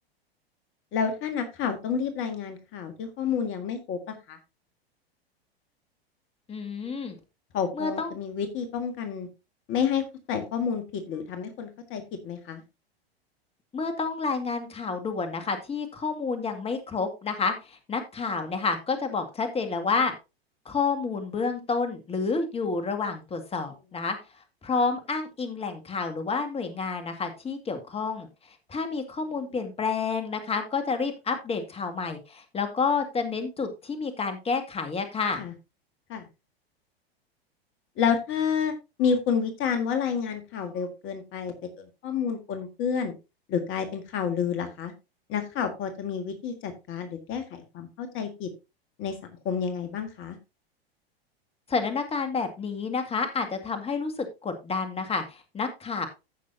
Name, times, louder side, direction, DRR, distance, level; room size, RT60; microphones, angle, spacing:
voice 1, 0.9-4.4 7.5-9.3 9.7-12.6 35.4-35.5 36.1-36.3 38.0-38.7 39.0-43.1 43.5-44.9 45.3-48.5 49.0-49.2 49.4-50.4, left 7 dB, 40° left, 7 dB, 1.8 m, -29 dB
voice 2, 6.5-7.2 7.8-8.1 13.7-20.1 20.7-24.2 24.6-28.3 28.7-35.4 51.7-56.1, left 4 dB, 20° left, 7 dB, 2.0 m, -29 dB
15.0 x 6.1 x 2.7 m, 0.27 s
hypercardioid pair, 100°, 31 cm